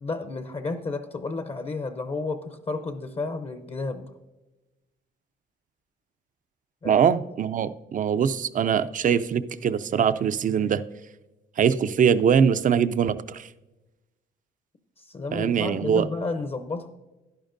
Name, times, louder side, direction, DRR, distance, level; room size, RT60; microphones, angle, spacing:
voice 1, 0.0-4.1 6.8-7.0 15.0-16.9, left 3 dB, 30° left, 8 dB, 0.7 m, -32 dB
voice 2, 6.8-10.8 11.6-13.5 15.3-16.1, right 7 dB, 40° right, 14 dB, 0.4 m, -22 dB
11.0 x 10.5 x 2.6 m, 1.1 s
cardioid pair, 90°, 20 cm